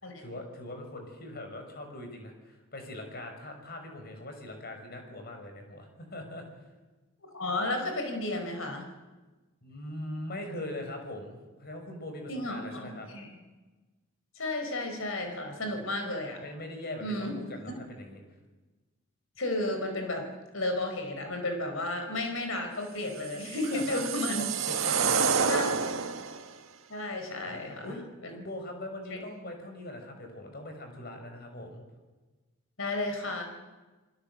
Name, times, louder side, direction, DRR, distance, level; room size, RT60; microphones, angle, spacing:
voice 1, 0.2-6.4 9.6-13.1 16.4-18.2 23.6-24.0 24.3-25.7 27.4-28.0 28.3-31.8, left 1 dB, 50° left, 5 dB, 6.2 m, -41 dB
voice 2, 7.3-8.9 12.3-13.4 14.3-16.4 17.0-17.3 19.4-20.3 20.5-24.4 25.5-25.6 26.9-27.9 28.2-28.3 29.1-29.2 32.8-33.4, left 1 dB, 70° left, 5 dB, 4.9 m, -33 dB
sound 1, 23.2-26.4, right 6 dB, 70° right, 1.8 m, -28 dB
28.5 x 21.0 x 8.1 m, 1.2 s
head